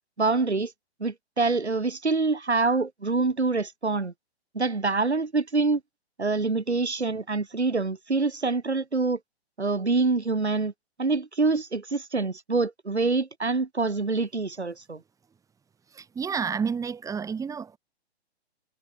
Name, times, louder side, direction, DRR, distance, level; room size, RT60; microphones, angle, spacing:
voice 1, 0.2-0.7 1.0-4.1 4.5-5.8 6.2-9.2 9.6-10.7 11.0-15.0, right 3 dB, 80° right, 3.7 m, -25 dB
voice 2, 15.9-17.8, right 6 dB, 10° right, 3.6 m, -30 dB
figure-of-eight pair, 125°, 33 cm